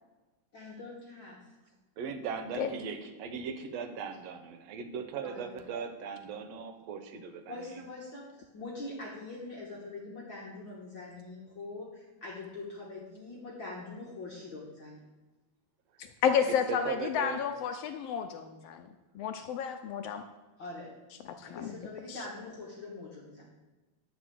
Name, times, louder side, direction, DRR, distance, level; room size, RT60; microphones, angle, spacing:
voice 1, 0.5-1.5 5.2-5.6 7.5-15.0 20.1-20.2 20.6-20.9 21.4-23.4, left 2 dB, 50° left, -4 dB, 1.9 m, -43 dB
voice 2, 2.0-7.6 16.4-17.4, right 6 dB, 70° right, 8 dB, 1.8 m, -38 dB
voice 3, 16.0-18.9 19.1-20.2 21.4-21.7 22.1-22.2, left 7 dB, 80° left, 7 dB, 1.4 m, -31 dB
11.5 x 4.4 x 7.6 m, 1.2 s
omnidirectional pair, 3.4 m